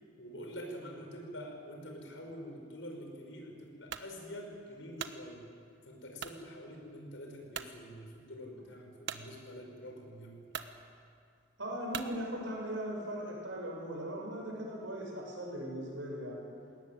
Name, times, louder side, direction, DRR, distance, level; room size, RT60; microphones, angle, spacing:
voice 1, 0.2-5.4 5.9-10.4, equal, 90° left, 2 dB, 5.4 m, -46 dB
sound 1, 3.9-4.1 4.7-5.2 6.2-6.4 7.0-7.1 7.5-7.7 9.1-9.3 10.0-10.1 10.5-10.7 11.9-12.2, right 7 dB, 65° right, 1.1 m, -40 dB
voice 2, 11.6-16.4, equal, 90° right, -1 dB, 6.8 m, -39 dB
20.5 x 18.5 x 9.4 m, 2.3 s
head